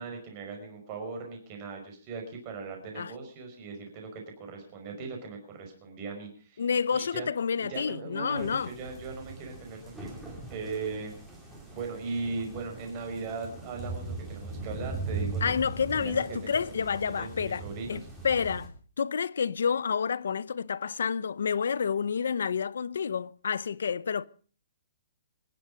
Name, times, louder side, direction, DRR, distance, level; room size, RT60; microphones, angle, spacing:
voice 1, 0.0-6.7 6.9-7.3 7.6-10.1 10.5-11.2 11.7-15.5 15.9-18.1, right 4 dB, 25° right, 5.3 m, -39 dB
voice 2, 6.6-8.7 15.4-17.6 17.9-18.7 19.0-24.2, left 6 dB, 75° left, 0.8 m, -29 dB
sound 1, 8.4-18.7, right 3 dB, 5° right, 3.9 m, -40 dB
25.5 x 11.0 x 5.0 m
hypercardioid pair, 175°, 0 cm